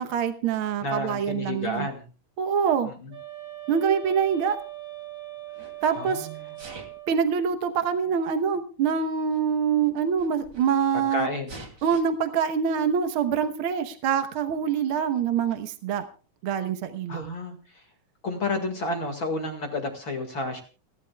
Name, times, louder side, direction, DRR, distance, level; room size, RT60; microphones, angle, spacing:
voice 1, 0.0-1.9 2.4-2.9 3.7-4.6 5.8-6.3 7.1-11.3 11.8-16.0 16.4-17.3, right 7 dB, 65° right, 7 dB, 1.3 m, -25 dB
voice 2, 0.8-2.1 3.0-3.1 5.9-6.6 11.1-11.5 17.1-17.9 18.2-20.6, left 2 dB, 40° left, 4 dB, 2.4 m, -31 dB
sound 1, 3.1-7.3, right 15 dB, 90° right, 7.4 m, -40 dB
Sneeze, 4.0-5.0 5.5-6.0 6.5-7.1 8.0-8.1 9.0-9.1 9.3-9.4 9.8-11.0 11.5-12.0, right 2 dB, 35° right, 3.0 m, -46 dB
29.5 x 12.0 x 2.3 m, 0.36 s
omnidirectional pair, 3.8 m